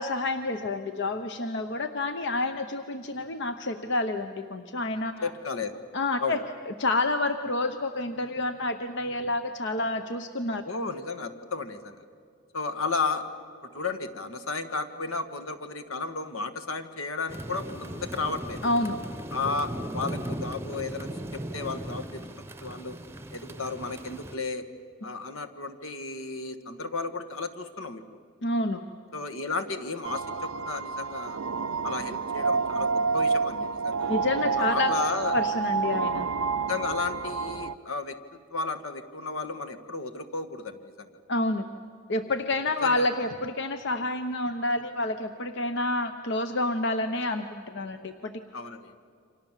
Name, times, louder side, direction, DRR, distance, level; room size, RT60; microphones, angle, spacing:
voice 1, 0.0-5.3 5.9-10.6 18.6-19.0 28.4-28.8 34.1-34.9 35.3-36.3 41.3-41.7 42.1-48.3, left 2 dB, 55° left, 8 dB, 1.0 m, -28 dB
voice 2, 5.2-5.7 6.2-6.4 10.6-12.0 12.5-13.3 13.7-18.6 19.3-22.2 22.6-23.0 23.3-24.7 25.0-28.2 29.1-31.4 31.8-34.1 34.6-35.3 36.7-38.2 38.5-41.1 42.8-43.1 48.5-48.9, left 4 dB, 75° left, 9 dB, 1.7 m, -33 dB
sound 1, 17.3-24.3, right 1 dB, 10° right, 0.9 m, -38 dB
sound 2, 30.0-37.7, right 5 dB, 80° right, 0.6 m, -29 dB
29.0 x 26.0 x 7.5 m, 2.4 s
head